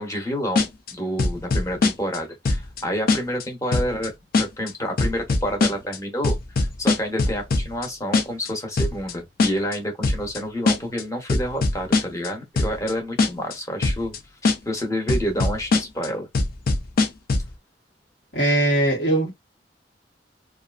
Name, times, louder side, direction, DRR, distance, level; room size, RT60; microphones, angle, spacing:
voice 1, 0.0-14.2 14.4-16.3, equal, 20° left, 0.9 m, -29 dB
sound 1, 0.6-0.9 1.2-2.2 2.4-2.8 3.1-3.4 3.7-4.1 4.3-4.7 5.0-6.0 6.2-7.9 8.1-8.5 8.8-9.1 9.4-9.8 10.0-10.4 10.7-11.0 11.3-12.3 12.6-12.9 13.2-13.5 13.8-14.2 14.4-14.8 15.1-16.1 16.3-17.5, left 3 dB, 55° left, 0.5 m, -21 dB
voice 2, 18.3-19.3, right 1 dB, 75° left, 1.2 m, -20 dB
2.5 x 2.3 x 2.4 m
head